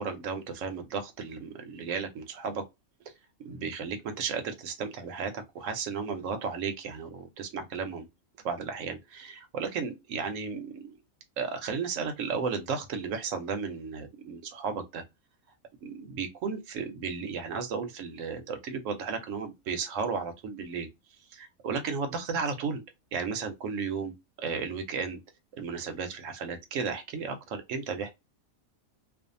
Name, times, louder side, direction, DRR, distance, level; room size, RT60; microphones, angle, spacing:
voice 1, 0.0-2.6 3.4-8.1 8.4-11.0 11.4-15.0 15.8-20.9 21.3-22.8 23.1-25.2 25.6-28.1, right 5 dB, 70° right, 0.9 m, -34 dB
2.5 x 2.3 x 2.5 m
omnidirectional pair, 1.5 m